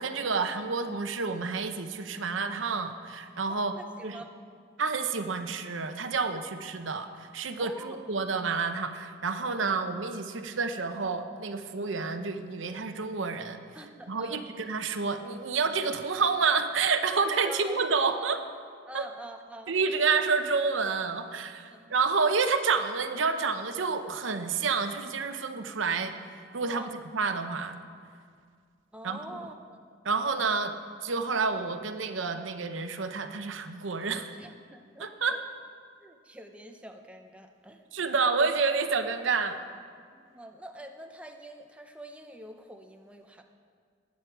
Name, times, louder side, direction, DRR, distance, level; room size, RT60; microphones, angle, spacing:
voice 1, 0.0-3.7 4.0-4.2 4.8-13.6 14.1-18.4 18.9-19.1 19.7-27.8 29.0-29.2 30.0-30.7 31.0-34.3 35.0-35.4 37.9-39.6, right 4 dB, 90° right, 8 dB, 0.9 m, -29 dB
voice 2, 3.5-4.3 6.1-6.2 7.6-8.0 13.7-14.5 17.4-18.2 18.9-20.1 21.7-22.0 26.6-26.9 28.9-29.8 34.4-35.4 36.0-37.9 40.1-43.4, right 1 dB, 5° right, 4 dB, 0.7 m, -46 dB
19.5 x 8.5 x 4.7 m, 2.1 s
head